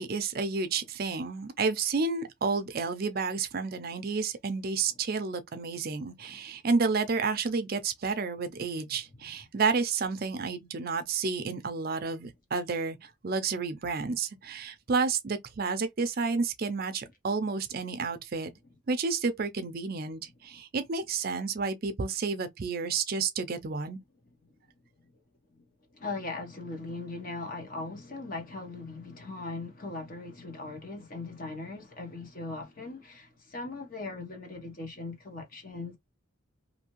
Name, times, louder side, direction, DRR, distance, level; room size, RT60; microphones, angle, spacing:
voice 1, 0.0-18.5 18.9-24.0, right 4 dB, 45° right, 0.5 m, -30 dB
voice 2, 25.9-36.0, left 3 dB, 40° left, 0.9 m, -39 dB
2.7 x 2.5 x 2.9 m
head